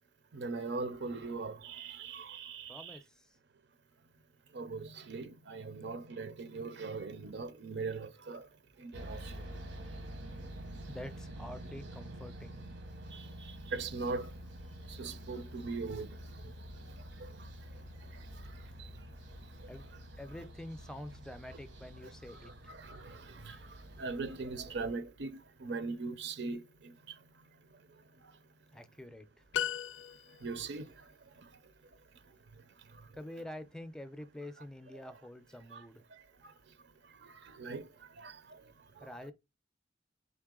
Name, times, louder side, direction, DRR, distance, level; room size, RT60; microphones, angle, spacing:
voice 1, 0.3-3.0 4.5-8.5 8.8-9.4 13.1-14.3 14.9-16.1 16.4-16.5 17.2-17.3 22.3-23.6 24.0-26.9 30.4-30.9 35.7-35.8 37.2-37.9 38.2-38.4, right 4 dB, 65° right, 0.6 m, -40 dB
voice 2, 2.7-3.3 9.9-10.0 10.9-12.6 19.7-19.9 20.2-22.7 28.7-29.3 33.1-36.0 39.0-39.3, left 1 dB, 5° left, 0.5 m, -47 dB
sound 1, 8.9-24.9, equal, 90° right, 1.1 m, -48 dB
sound 2, 29.5-30.7, left 9 dB, 85° left, 0.4 m, -36 dB
3.9 x 3.2 x 3.7 m
head